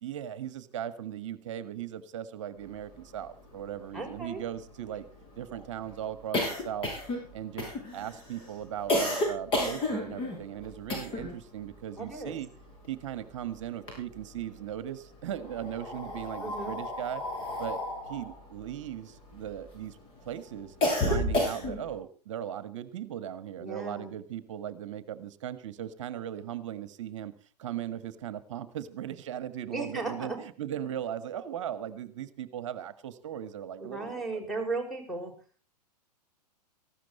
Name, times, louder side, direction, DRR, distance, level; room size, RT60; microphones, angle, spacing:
voice 1, 0.0-5.1 5.4-6.9 7.3-12.5 12.9-17.2 17.6-17.8 18.1-20.0 20.2-20.7 21.1-27.3 27.6-34.4, right 10 dB, 50° right, 14 dB, 1.5 m, -38 dB
sound 1, 3.2-3.3 3.5-3.6 4.0-11.4 11.7-13.3 13.6-14.6 15.3-19.8 20.2-22.0, left 1 dB, 25° left, 7.2 m, -32 dB
voice 2, 3.9-4.4 12.0-12.4 16.4-16.8 23.6-24.1 29.7-30.4 33.8-35.3, right 3 dB, ahead, 5 dB, 5.8 m, -36 dB
19.0 x 15.5 x 4.1 m, 0.40 s
figure-of-eight pair, 105°, 21 cm